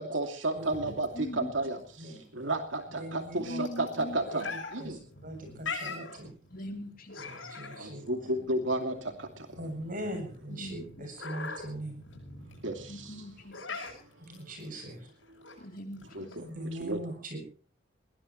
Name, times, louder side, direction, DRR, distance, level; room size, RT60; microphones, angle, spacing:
voice 1, 0.0-5.0 7.8-9.6 12.6-13.2 14.4-14.5 15.5-15.6 16.1-16.5 16.8-17.0, right 2 dB, 75° right, 5 dB, 2.6 m, -33 dB
sound 1, 0.6-16.5, left 4 dB, 80° left, 7.9 m, -44 dB
voice 2, 0.9-1.5 3.5-4.2 6.5-7.5 10.0-10.2 10.6-10.8 12.9-13.9 15.6-16.3, left 1 dB, 50° left, 5 dB, 3.0 m, -41 dB
voice 3, 3.0-3.6 4.3-6.3 7.2-8.3 9.6-12.0 14.2-15.1 16.4-17.4, right 1 dB, 45° right, 6 dB, 8.0 m, -41 dB
21.5 x 19.0 x 3.1 m, 0.39 s
head